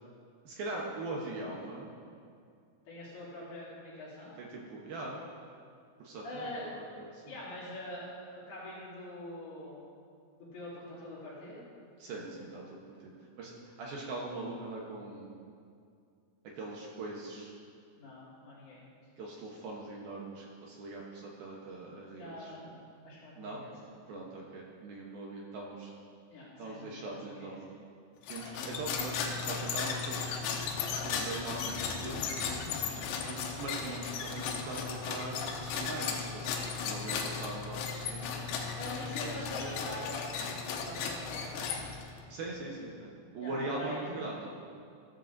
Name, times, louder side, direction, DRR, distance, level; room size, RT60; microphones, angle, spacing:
voice 1, 0.4-1.9 4.4-5.2 6.0-7.2 12.0-13.1 13.4-15.4 16.4-17.5 19.2-22.5 23.4-23.6 24.1-25.9 26.6-27.7 28.3-30.5 30.9-32.2 33.3-38.5 39.2-39.8 42.3-44.6, right 2 dB, 80° right, -3 dB, 2.1 m, -41 dB
voice 2, 2.9-4.3 6.2-6.7 7.3-9.8 10.4-11.7 17.9-18.8 22.1-23.7 26.3-27.5 38.8-40.2 40.8-41.8 43.4-44.2, left 1 dB, 55° left, -8 dB, 4.6 m, -44 dB
sound 1, 28.2-42.2, left 5 dB, 75° left, 3.1 m, -36 dB
16.0 x 14.0 x 2.6 m, 2.4 s
omnidirectional pair, 5.9 m